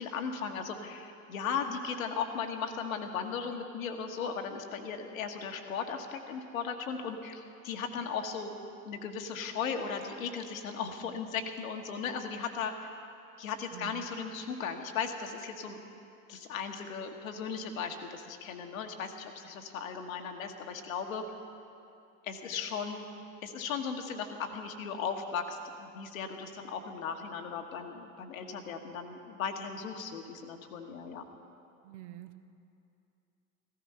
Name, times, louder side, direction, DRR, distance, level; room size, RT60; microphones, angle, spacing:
voice 1, 0.0-8.5 8.8-13.0 13.4-15.8 16.3-21.2 22.2-23.0 23.4-31.2, left 6 dB, 65° left, 5 dB, 1.5 m, -37 dB
voice 2, 13.7-14.1 31.8-32.4, right 15 dB, 55° right, 9 dB, 0.9 m, -46 dB
15.5 x 14.5 x 5.6 m, 2.6 s
figure-of-eight pair, 80°, 45 cm